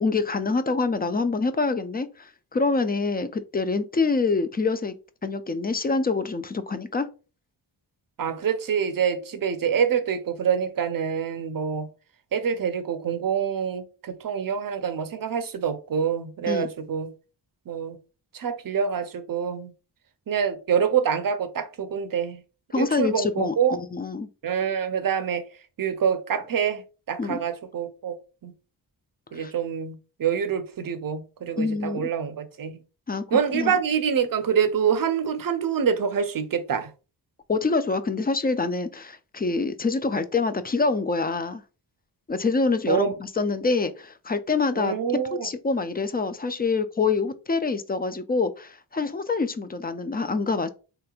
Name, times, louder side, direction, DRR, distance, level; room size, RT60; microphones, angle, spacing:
voice 1, 0.0-4.9 5.2-7.1 16.5-16.7 22.7-24.3 27.2-27.4 29.3-29.5 31.6-32.0 33.1-33.7 37.5-41.6 42.3-44.9 45.4-50.7, left 4 dB, 20° left, 0.4 m, -26 dB
voice 2, 8.2-11.9 12.3-17.1 17.7-18.0 18.3-19.7 20.3-22.4 22.7-23.8 24.4-25.4 25.8-26.8 27.1-28.2 28.4-28.5 29.3-32.8 33.3-36.9 42.9-43.1 44.8-45.5, right 7 dB, 45° right, 0.6 m, -26 dB
3.3 x 2.9 x 2.4 m
cardioid pair, 40°, 47 cm